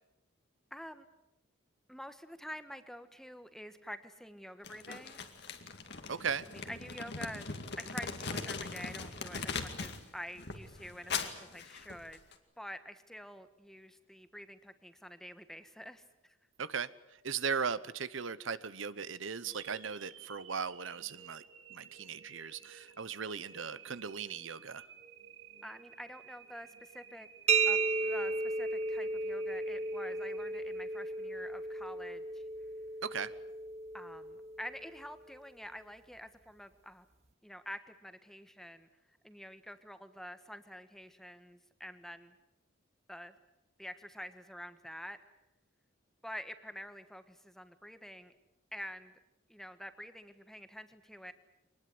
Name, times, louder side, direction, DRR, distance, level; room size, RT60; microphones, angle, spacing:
voice 1, 0.7-1.1 1.9-5.2 6.5-7.5 7.8-12.2 12.6-16.4 25.6-27.3 27.6-32.4 33.9-37.0 37.4-38.9 39.2-42.4 43.1-43.4 43.8-45.2 46.2-48.3 48.7-49.1 49.5-51.3, equal, ahead, 10 dB, 1.4 m, -47 dB
Crumpling crinkling, 4.6-10.0 10.3-12.3, left 5 dB, 55° left, 2.4 m, -40 dB
voice 2, 6.1-6.5 16.6-16.9 17.2-21.4 21.7-24.8 33.0-33.3, right 6 dB, 70° right, 16 dB, 0.9 m, -37 dB
sound 1, 19.4-31.5, right 7 dB, 90° right, 4.4 m, -55 dB
sound 2, 27.5-35.0, right 4 dB, 35° right, 1.0 m, -34 dB
25.0 x 20.0 x 9.5 m, 0.93 s
head